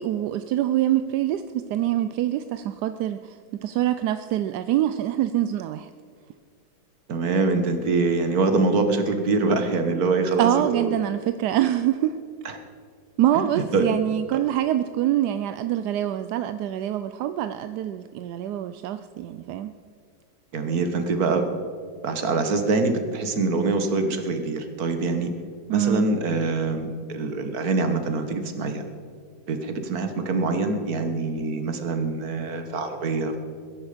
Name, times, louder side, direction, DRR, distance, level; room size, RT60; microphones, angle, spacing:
voice 1, 0.0-5.9 10.4-12.2 13.2-19.7 25.7-26.1, right 12 dB, 70° right, 10 dB, 1.0 m, -25 dB
voice 2, 7.1-10.9 12.5-12.6 13.3-13.9 14.3-14.4 20.5-21.5 22.0-25.3 25.7-28.8 29.5-33.4, right 3 dB, 55° right, 7 dB, 1.7 m, -24 dB
21.0 x 10.5 x 5.1 m, 2.2 s
omnidirectional pair, 2.0 m